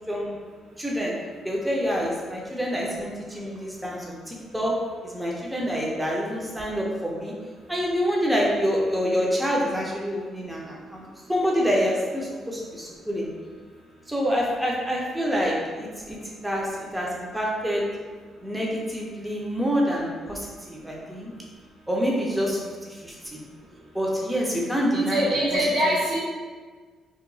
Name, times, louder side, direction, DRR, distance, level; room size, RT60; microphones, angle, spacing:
voice 1, 0.1-0.4 0.8-1.1 1.4-4.8 5.0-7.3 7.7-13.3 14.1-17.9 18.4-21.3 21.9-23.4 23.9-25.2, equal, 5° right, -3 dB, 0.4 m, -27 dB
voice 2, 24.9-26.2, right 1 dB, 80° right, -9 dB, 1.2 m, -23 dB
2.8 x 2.1 x 2.6 m, 1.5 s
cardioid pair, 90°, 0 cm